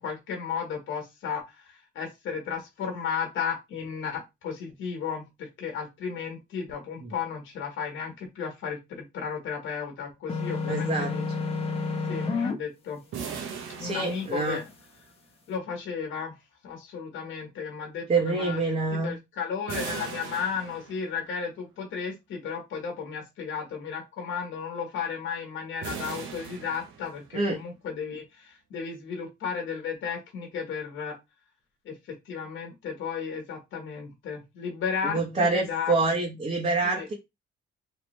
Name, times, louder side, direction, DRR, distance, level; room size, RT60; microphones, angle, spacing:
voice 1, 0.0-1.5 1.9-11.2 12.1-13.0 13.8-14.6 15.5-16.3 16.6-31.2 31.8-36.0 36.8-37.1, left 6 dB, 75° left, 1.2 m, -34 dB
sound 1, 10.3-12.5, left 4 dB, 30° left, 0.9 m, -29 dB
voice 2, 10.7-11.1 13.8-14.6 18.1-19.1 27.3-27.6 35.0-37.1, right 3 dB, 40° right, 1.1 m, -26 dB
sound 2, 13.1-15.0 19.7-21.3 25.8-27.5, right 6 dB, 90° right, 0.9 m, -39 dB
3.2 x 2.9 x 3.1 m
cardioid pair, 90°, 20 cm